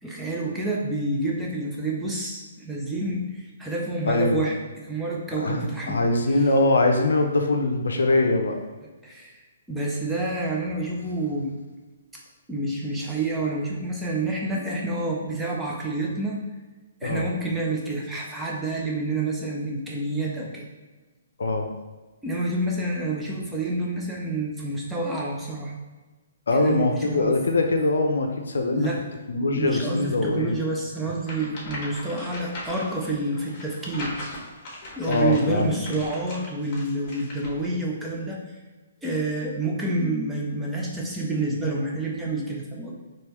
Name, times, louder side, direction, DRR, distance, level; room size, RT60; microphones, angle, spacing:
voice 1, 0.0-4.5 4.8-6.0 9.0-9.4 9.7-11.5 12.5-16.4 17.0-20.6 22.2-25.7 26.5-27.3 28.7-29.0 29.5-34.2 35.0-38.4 39.0-42.9, right 2 dB, 5° right, -3 dB, 0.7 m, -28 dB
voice 2, 4.1-4.4 5.3-8.6 17.0-17.3 21.4-21.7 26.5-28.9 29.3-30.6 35.1-35.7, left 2 dB, 70° left, 4 dB, 0.5 m, -22 dB
sound 1, 31.2-37.7, left 1 dB, 30° left, 1.3 m, -39 dB
4.5 x 3.0 x 3.1 m, 1.2 s
figure-of-eight pair, 130°, 0 cm